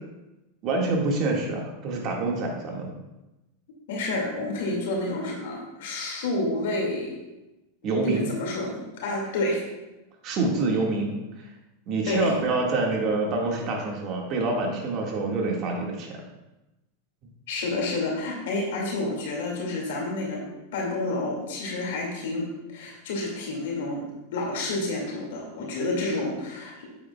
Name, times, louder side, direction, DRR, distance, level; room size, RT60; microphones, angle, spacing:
voice 1, 0.6-2.9 7.8-8.3 10.2-11.5 11.9-16.2, right 3 dB, 45° right, 0 dB, 1.9 m, -26 dB
voice 2, 3.9-7.1 8.0-9.6 12.1-12.3 17.5-20.4 20.7-24.0 24.3-26.9, left 2 dB, 75° left, -2 dB, 2.3 m, -29 dB
8.6 x 8.6 x 2.4 m, 1.0 s
supercardioid pair, 125°, 0 cm